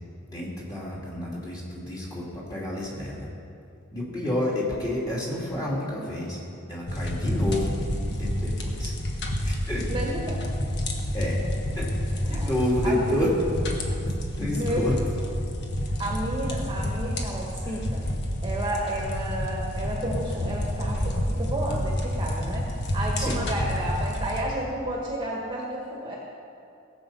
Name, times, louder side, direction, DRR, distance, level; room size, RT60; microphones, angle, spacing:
voice 1, 0.3-3.3 3.9-6.4 6.7-8.9 9.4-9.9 11.1-11.4 11.8-11.9 12.3-13.3 14.4-14.9 23.2-23.4, left 1 dB, 20° left, -5 dB, 2.7 m, -29 dB
sound 1, 6.9-24.4, equal, 55° left, 1.4 m, -29 dB
voice 2, 9.9-10.4 12.2-12.5 12.8-13.0 14.0-14.1 14.5-14.9 16.0-18.0 18.4-26.2, right 1 dB, 20° right, -3 dB, 1.5 m, -31 dB
18.0 x 7.4 x 5.5 m, 2.6 s
head